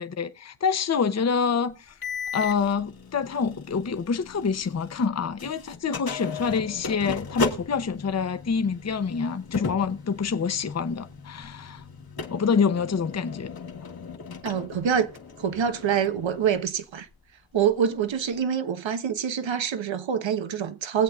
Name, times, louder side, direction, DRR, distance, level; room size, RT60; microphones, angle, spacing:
voice 1, 0.0-2.0 2.3-11.8 12.3-13.5 13.8-13.9, left 5 dB, 35° left, 0.8 m, -26 dB
sound 1, 2.0-5.1 5.4-16.5, left 4 dB, 50° left, 1.6 m, -36 dB
voice 2, 14.4-15.1 15.4-17.1 17.5-21.0, right 7 dB, 70° right, 1.2 m, -25 dB
21.0 x 8.0 x 2.4 m
cardioid pair, 80°, 48 cm